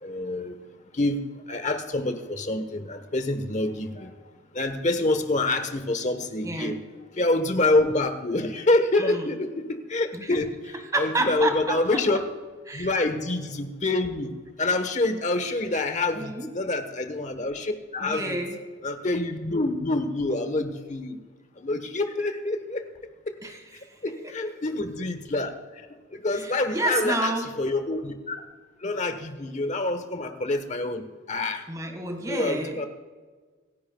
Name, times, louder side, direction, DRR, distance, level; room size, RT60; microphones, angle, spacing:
voice 1, 0.0-0.5 0.9-4.1 4.5-6.8 7.1-12.2 12.7-14.3 14.6-18.4 18.8-21.2 21.6-22.8 23.3-23.4 24.0-25.5 26.1-27.3 27.6-28.4 28.8-31.6 32.2-32.9, left 2 dB, 40° left, 8 dB, 1.1 m, -27 dB
voice 2, 6.4-6.8 9.0-9.3 10.1-10.3 10.9-12.0 12.7-12.9 16.1-16.5 18.0-18.6 23.4-24.2 26.3-27.5 31.7-32.7, right 2 dB, 15° right, 4 dB, 1.7 m, -30 dB
26.5 x 10.5 x 2.3 m, 1.4 s
head